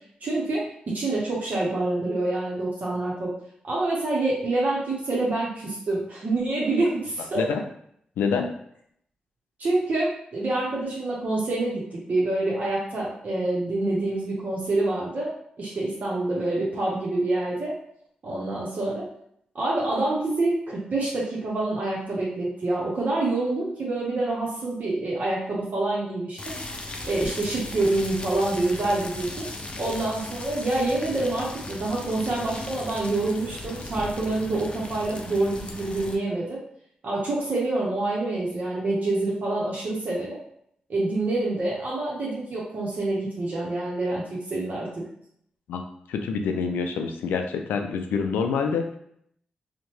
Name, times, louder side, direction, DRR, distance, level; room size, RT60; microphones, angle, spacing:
voice 1, 0.2-3.3 3.6-7.4 9.6-17.7 18.2-19.1 19.5-26.4 27.0-29.5 29.8-36.6 37.0-40.4 40.9-45.1, right 2 dB, 60° right, -5 dB, 0.8 m, -27 dB
voice 2, 8.2-8.5 45.7-45.8 46.1-48.9, left 5 dB, 85° left, 5 dB, 0.3 m, -26 dB
sound 1, 26.4-36.2, left 2 dB, 35° left, 0.5 m, -37 dB
2.8 x 2.1 x 3.0 m, 0.69 s
supercardioid pair, 40°, 3 cm